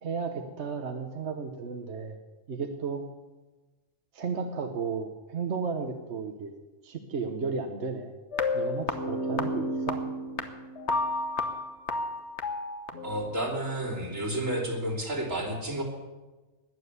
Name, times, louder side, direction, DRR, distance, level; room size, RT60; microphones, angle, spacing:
voice 1, 0.0-2.2 2.5-3.1 4.1-6.5 6.8-8.1 8.5-10.0, right 5 dB, 60° right, 5 dB, 1.2 m, -34 dB
sound 1, 8.3-13.4, left 2 dB, 60° left, 1.4 m, -31 dB
voice 2, 13.0-15.8, right 1 dB, 80° right, -2 dB, 3.8 m, -31 dB
20.5 x 7.7 x 8.2 m, 1.2 s
omnidirectional pair, 1.3 m